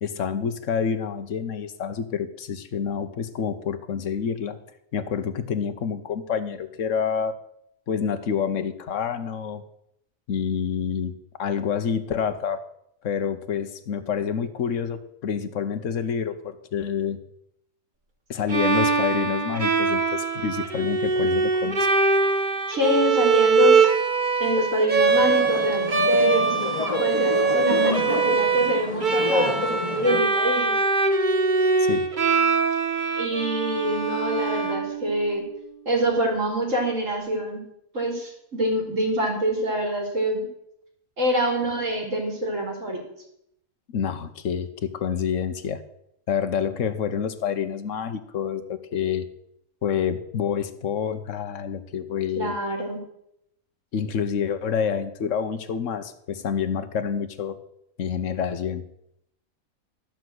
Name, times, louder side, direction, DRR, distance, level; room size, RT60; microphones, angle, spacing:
voice 1, 0.0-4.6 4.9-7.4 7.9-9.6 10.3-11.1 11.4-12.6 13.0-17.2 18.3-21.9 31.9-32.1 41.4-41.7 43.9-45.8 46.3-49.3 49.8-52.6 53.9-57.6 58.0-58.8, left 7 dB, 65° left, 10 dB, 1.3 m, -28 dB
Bowed string instrument, 18.5-35.4, right 4 dB, 35° right, 1.2 m, -22 dB
voice 2, 22.7-23.9 24.4-26.5 27.0-30.7 33.2-35.4 35.9-37.7 37.9-40.5 41.2-43.0 52.4-53.0, equal, 65° right, 1 dB, 3.7 m, -25 dB
sound 1, 25.0-30.2, left 3 dB, 30° left, 1.1 m, -29 dB
14.0 x 6.0 x 7.8 m, 0.77 s
omnidirectional pair, 1.5 m